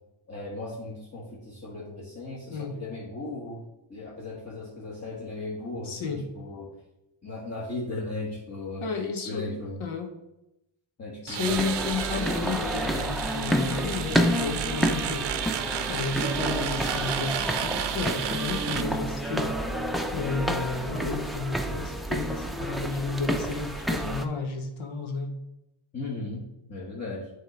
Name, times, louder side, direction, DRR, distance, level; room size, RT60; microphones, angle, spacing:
voice 1, 0.3-6.7 7.2-9.8 11.0-11.6 25.9-27.3, left 2 dB, 35° left, -4 dB, 1.4 m, -37 dB
voice 2, 5.9-6.3 8.8-10.1 11.2-15.3 15.9-19.6 20.1-25.3, left 4 dB, 80° left, 4 dB, 1.1 m, -32 dB
sound 1, 11.3-18.8, right 10 dB, 60° right, 0.6 m, -32 dB
sound 2, 11.4-24.2, equal, ahead, 0.5 m, -29 dB
7.5 x 3.3 x 5.1 m, 0.89 s
cardioid pair, 95°, 47 cm